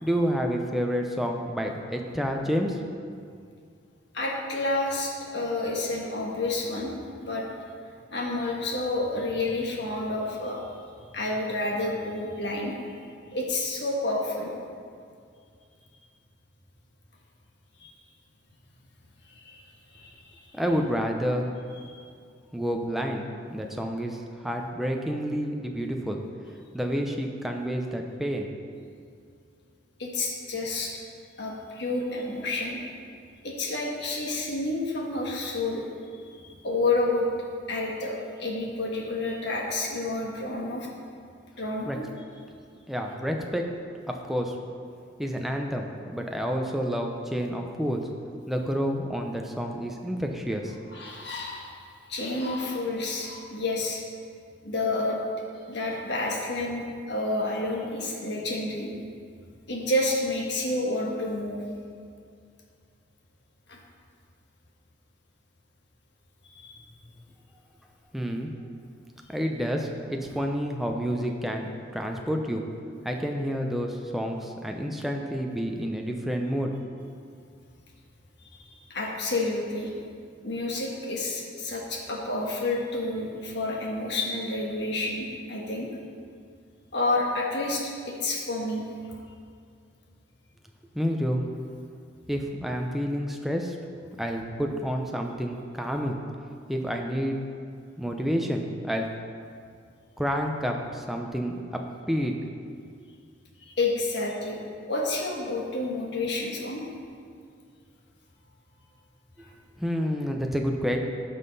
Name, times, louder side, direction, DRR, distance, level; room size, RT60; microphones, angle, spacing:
voice 1, 0.0-2.8 20.5-21.5 22.5-26.2 26.7-28.5 41.9-42.0 42.9-43.6 44.1-44.6 45.2-48.0 48.5-50.8 68.1-68.5 69.3-72.6 73.0-76.8 90.9-91.4 92.3-93.8 94.2-96.2 96.7-97.4 98.0-99.1 100.2-101.6 102.1-102.4 109.8-111.0, equal, ahead, 1 dB, 0.6 m, -29 dB
voice 2, 4.1-7.5 8.1-10.6 11.1-13.0 13.3-14.5 17.8-17.9 19.3-19.6 19.9-20.5 21.8-21.9 30.0-30.9 31.4-32.8 33.4-35.8 36.3-37.3 37.7-40.9 41.6-42.1 50.9-51.7 52.1-54.0 54.6-55.2 55.7-58.9 59.7-61.6 63.7-63.8 66.5-66.8 78.5-80.0 80.4-85.9 86.9-88.8 103.7-104.6 104.9-106.8 109.4-109.5, left 2 dB, 55° left, -2 dB, 1.6 m, -29 dB
15.0 x 5.6 x 4.1 m, 2.3 s
head